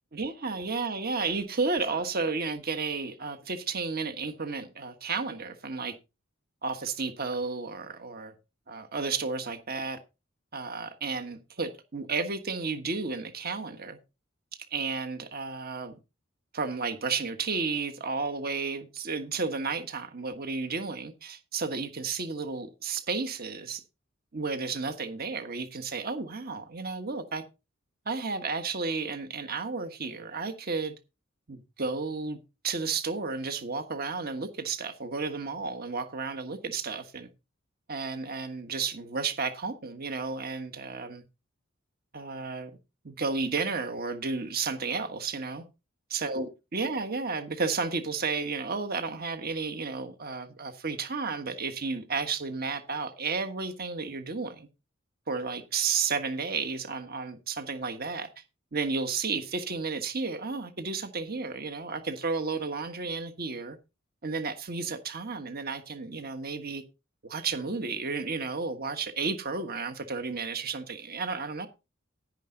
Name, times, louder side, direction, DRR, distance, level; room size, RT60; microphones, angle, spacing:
voice 1, 0.1-5.9 6.6-8.3 8.7-10.0 10.5-14.0 14.7-15.9 16.5-23.8 24.3-27.4 28.0-30.9 31.5-32.4 32.6-37.3 37.9-41.2 42.1-42.7 43.0-45.6 46.1-54.7 55.3-58.4 58.7-63.8 64.2-66.8 67.2-71.7, right 4 dB, 50° right, 1.4 m, -32 dB
10.5 x 10.5 x 3.9 m
head